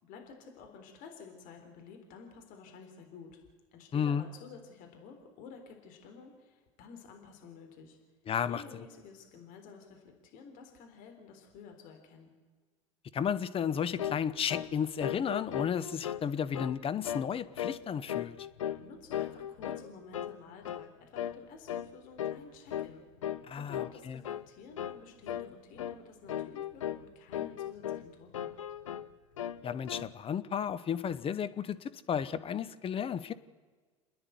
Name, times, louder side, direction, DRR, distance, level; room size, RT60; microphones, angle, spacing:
voice 1, 0.0-3.4 3.7-8.0 8.5-12.3 18.7-23.1 23.5-28.6, left 5 dB, 60° left, 3 dB, 3.8 m, -51 dB
voice 2, 3.9-4.2 8.3-8.6 13.1-18.4 23.5-24.2 29.6-33.3, left 8 dB, 35° left, 13 dB, 1.0 m, -33 dB
sound 1, 14.0-14.2 14.5-14.7 15.0-16.2 16.5-16.8 17.0-17.3 17.6-17.8 18.1-18.8 19.1-19.9 20.1-20.4 20.6-20.9 21.2-21.4 21.7-21.9 22.2-22.4 22.7-22.9 23.2-23.4 23.7-24.0 24.2-24.4 24.8-25.0 25.3-25.5 25.8-26.0 26.3-27.0 27.3-28.1 28.3-29.1 29.4-30.1, left 10 dB, 85° left, 0.8 m, -37 dB
28.5 x 10.0 x 9.4 m, 1.4 s
hypercardioid pair, 80°, 16 cm